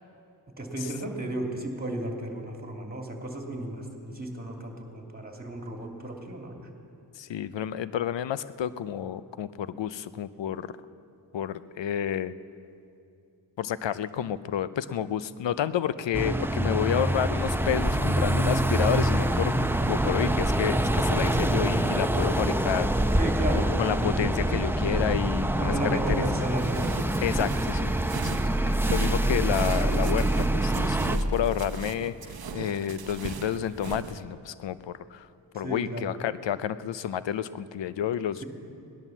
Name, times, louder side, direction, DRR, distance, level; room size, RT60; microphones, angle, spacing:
voice 1, 0.6-6.7 23.1-24.3 25.6-26.9 35.6-36.1, right 1 dB, 20° right, 2 dB, 2.8 m, -34 dB
voice 2, 7.2-10.7 11.3-12.3 13.6-23.2 23.6-26.2 27.2-27.9 28.2-28.4 28.9-35.3 35.5-38.4, left 9 dB, 70° left, 15 dB, 0.7 m, -30 dB
sound 1, 16.1-31.2, right 1 dB, 5° right, 0.7 m, -25 dB
sound 2, 26.5-34.2, right 6 dB, 55° right, 0.9 m, -39 dB
17.5 x 11.0 x 7.2 m, 2.6 s
cardioid pair, 50°, 45 cm